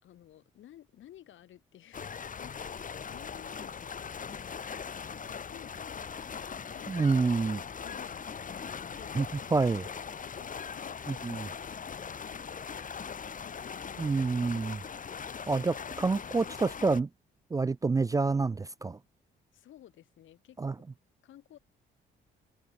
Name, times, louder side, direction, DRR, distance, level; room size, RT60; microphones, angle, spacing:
voice 1, 0.0-4.5 5.2-8.2 8.9-9.7 10.2-14.2 14.6-14.9 19.5-20.6 21.2-21.6, left 12 dB, 75° left, 4.6 m, -55 dB
sound 1, 1.9-17.0, left 6 dB, 40° left, 2.5 m, -40 dB
voice 2, 6.9-7.6 9.2-9.3 9.5-9.8 11.2-11.5 14.0-14.8 15.5-17.1 17.5-19.0 20.6-20.7, right 4 dB, 15° right, 0.3 m, -27 dB
cardioid pair, 90°, 20 cm